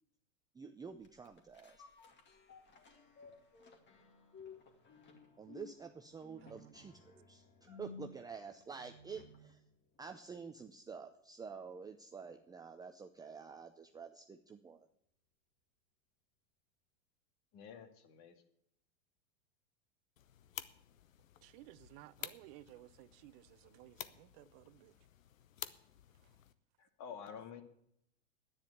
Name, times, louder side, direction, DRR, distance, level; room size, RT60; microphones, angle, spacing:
voice 1, 0.5-1.8 5.4-9.6 10.0-14.9, right 5 dB, 10° right, 0.6 m, -49 dB
sound 1, 1.0-9.6 10.0-10.1, left 4 dB, 30° left, 2.2 m, -56 dB
voice 2, 6.4-6.9 21.4-25.0, right 17 dB, 50° right, 0.7 m, -57 dB
voice 3, 17.5-18.4 26.8-27.6, left 7 dB, 45° left, 2.2 m, -50 dB
sound 2, 20.2-26.5, left 10 dB, 85° left, 0.9 m, -51 dB
10.5 x 9.9 x 7.9 m
hypercardioid pair, 115°, 39 cm